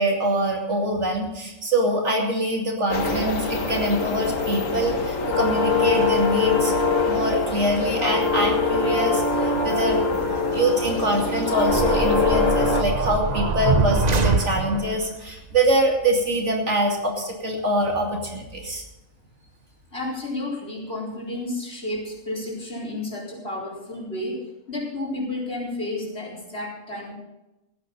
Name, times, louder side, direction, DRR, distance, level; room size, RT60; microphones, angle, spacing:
voice 1, 0.0-6.7 7.1-18.8, right 1 dB, 55° right, 0 dB, 2.9 m, -24 dB
sound 1, 2.9-12.8, left 4 dB, 65° left, 1.9 m, -23 dB
sound 2, 11.7-15.0, right 4 dB, 35° right, 0.9 m, -23 dB
voice 2, 19.9-27.1, left 2 dB, 50° left, -2 dB, 4.6 m, -31 dB
16.0 x 11.0 x 5.4 m, 0.97 s
omnidirectional pair, 1.4 m